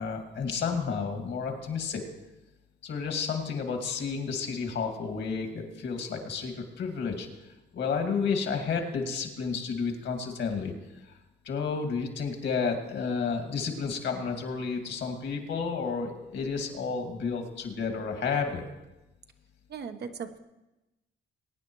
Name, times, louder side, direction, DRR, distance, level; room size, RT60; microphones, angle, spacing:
voice 1, 0.0-2.0 2.8-7.3 7.7-10.7 11.4-18.6, left 5 dB, 65° left, 3 dB, 2.3 m, -31 dB
voice 2, 19.7-20.4, right 6 dB, 55° right, 7 dB, 1.0 m, -38 dB
22.0 x 9.4 x 3.1 m, 1.0 s
cardioid pair, 90°, 20 cm